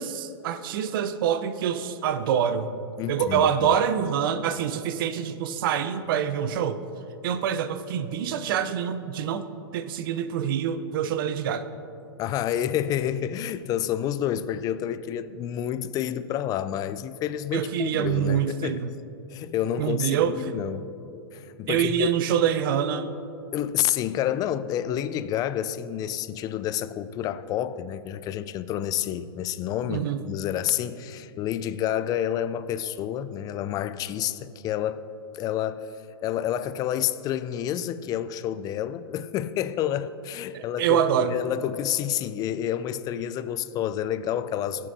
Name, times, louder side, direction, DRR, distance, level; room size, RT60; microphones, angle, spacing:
voice 1, 0.0-2.7 3.1-6.8 7.2-9.5 9.7-11.7 17.5-18.9 19.8-20.6 21.7-23.1 29.9-30.2 40.5-41.4, right 9 dB, 60° right, 0.7 m, -26 dB
voice 2, 3.0-3.7 12.2-18.8 19.3-20.8 21.3-22.1 23.5-35.1 35.3-35.9 36.2-44.9, left 10 dB, 30° left, 0.4 m, -29 dB
18.0 x 7.4 x 2.7 m
hypercardioid pair, 115°, 13 cm